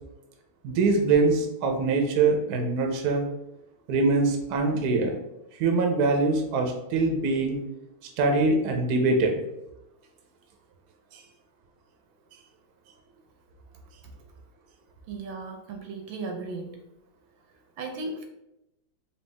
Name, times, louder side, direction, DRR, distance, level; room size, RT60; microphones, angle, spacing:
voice 1, 0.6-3.3 3.9-5.2 5.6-7.6 8.2-9.3 11.1-11.2, right 3 dB, 65° right, 3 dB, 1.1 m, -23 dB
voice 2, 15.1-16.8 17.8-18.2, right 3 dB, 80° right, 3 dB, 1.5 m, -36 dB
4.4 x 3.0 x 3.3 m, 0.87 s
omnidirectional pair, 2.1 m